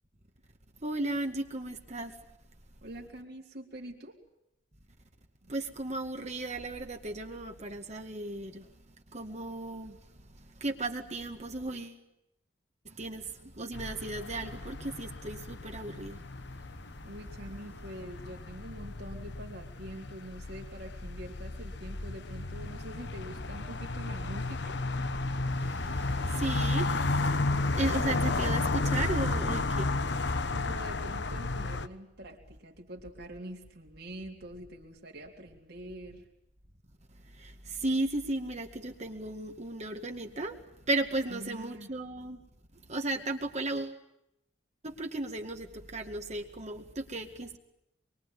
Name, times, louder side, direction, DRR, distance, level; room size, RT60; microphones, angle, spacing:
voice 1, 0.8-2.1 5.5-8.7 9.1-10.0 10.3-12.0 12.9-16.2 25.4-30.5 37.2-40.6 40.9-42.4 42.9-44.0 44.8-47.6, right 2 dB, 40° right, 2.1 m, -35 dB
voice 2, 2.8-4.2 5.4-5.5 17.0-24.8 30.5-36.3 41.3-41.9, right 1 dB, 60° right, 3.7 m, -45 dB
sound 1, 13.7-31.9, left 2 dB, 65° left, 1.2 m, -33 dB
25.5 x 23.0 x 9.4 m
head